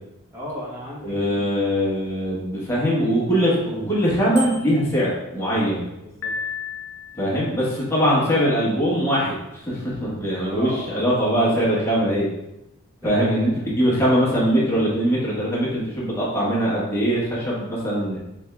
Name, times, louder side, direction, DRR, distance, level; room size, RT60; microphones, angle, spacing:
voice 1, 0.3-1.5 6.0-6.3 10.5-11.6 13.0-13.5, left 1 dB, 15° right, -6 dB, 1.2 m, -36 dB
voice 2, 1.0-5.9 7.2-12.3 13.0-13.5 13.8-18.2, equal, 10° left, -8 dB, 1.2 m, -22 dB
Bicycle bell, 4.3-5.0, right 5 dB, 45° right, 1.2 m, -35 dB
Piano, 6.2-7.5, left 5 dB, 60° left, 0.4 m, -32 dB
3.5 x 3.5 x 3.4 m, 0.93 s
head